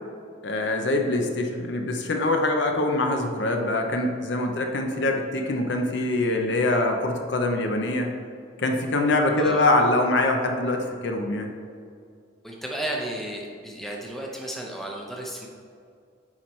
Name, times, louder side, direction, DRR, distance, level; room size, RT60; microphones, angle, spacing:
voice 1, 0.4-8.1 8.6-11.5, left 2 dB, 60° left, 3 dB, 0.7 m, -24 dB
voice 2, 9.4-9.7 12.4-15.5, right 1 dB, ahead, -2 dB, 0.7 m, -33 dB
9.7 x 4.4 x 3.2 m, 2.3 s
head